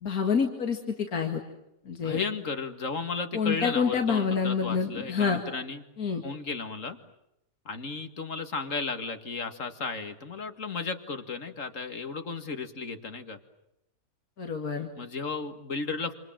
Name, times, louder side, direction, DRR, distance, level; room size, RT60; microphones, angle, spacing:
voice 1, 0.0-1.4 1.9-2.2 3.3-5.4 6.0-6.2 14.4-14.9, left 6 dB, 80° left, 3 dB, 2.5 m, -27 dB
voice 2, 2.0-5.8 6.2-7.0 7.7-13.4 15.0-16.1, left 4 dB, 60° left, 8 dB, 2.3 m, -34 dB
28.0 x 27.5 x 7.5 m, 0.85 s
omnidirectional pair, 1.5 m